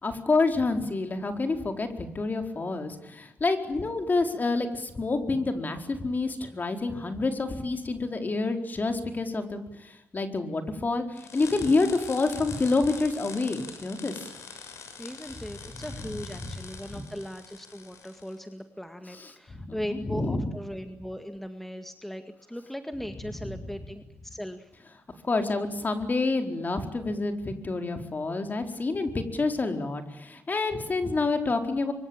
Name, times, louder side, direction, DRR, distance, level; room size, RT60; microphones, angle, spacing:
voice 1, 0.0-14.2 16.4-16.5 16.9-17.0 19.2-20.5 23.4-23.6 25.3-31.9, left 3 dB, 35° left, 6 dB, 4.6 m, -28 dB
sound 1, 11.2-18.4, left 6 dB, 80° left, 6.5 m, -44 dB
voice 2, 15.0-24.7, equal, 5° left, 7 dB, 2.0 m, -38 dB
25.0 x 24.5 x 9.0 m, 0.89 s
cardioid pair, 80°, 5 cm